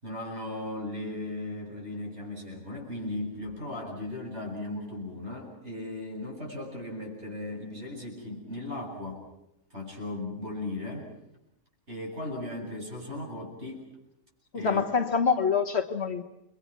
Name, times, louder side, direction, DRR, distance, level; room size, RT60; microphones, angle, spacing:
voice 1, 0.0-9.2 9.7-11.1 11.9-13.9 14.5-14.8, left 2 dB, 50° right, -1 dB, 8.2 m, -37 dB
voice 2, 14.5-16.2, left 5 dB, 50° left, 6 dB, 1.5 m, -26 dB
30.0 x 24.0 x 6.1 m, 0.84 s
omnidirectional pair, 1.4 m